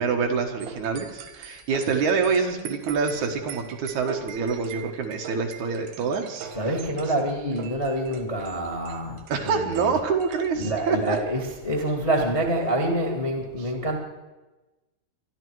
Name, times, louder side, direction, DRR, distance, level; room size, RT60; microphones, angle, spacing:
voice 1, 0.0-6.5 9.3-11.2, right 5 dB, 60° right, 3 dB, 2.4 m, -26 dB
sound 1, 0.6-11.2, right 8 dB, 85° right, 3.4 m, -42 dB
voice 2, 6.5-10.0 10.5-14.0, right 1 dB, 60° left, 2 dB, 0.3 m, -27 dB
24.0 x 12.0 x 4.7 m, 1.1 s
omnidirectional pair, 4.4 m